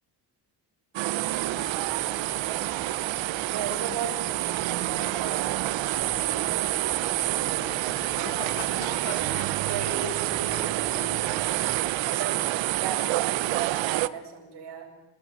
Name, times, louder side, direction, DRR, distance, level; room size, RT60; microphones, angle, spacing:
sound 1, 0.9-14.1, right 17 dB, 85° right, 1.0 m, -28 dB
sound 2, 1.3-12.0, equal, 10° left, 4.3 m, -46 dB
voice 1, 3.5-4.2 4.6-5.5 6.2-6.7 7.1-11.5 12.0-14.9, right 6 dB, 65° right, 2 dB, 7.5 m, -38 dB
sound 3, 7.1-11.2, left 9 dB, 80° left, 2.7 m, -43 dB
29.5 x 19.5 x 9.5 m, 1.0 s
cardioid pair, 130°, 44 cm